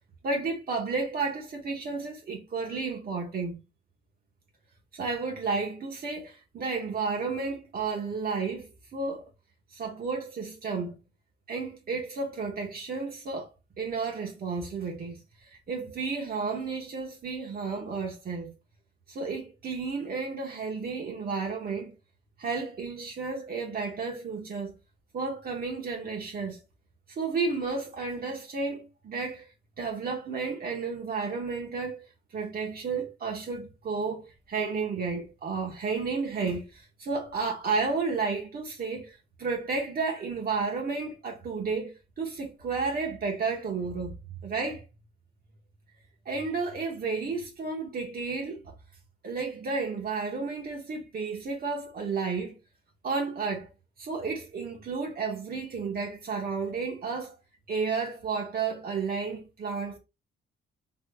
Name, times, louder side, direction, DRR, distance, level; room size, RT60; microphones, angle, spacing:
voice 1, 0.2-3.6 4.9-9.3 9.7-11.0 11.5-13.5 13.8-15.2 15.7-18.5 19.1-21.9 22.4-24.7 25.1-26.6 27.2-29.5 29.8-32.0 32.3-44.1 44.4-44.8 46.3-48.7 49.2-52.6 53.0-53.7 54.0-57.4 57.7-60.0, right 4 dB, 50° right, 1.1 m, -32 dB
3.7 x 3.1 x 2.2 m
cardioid pair, 90°, 20 cm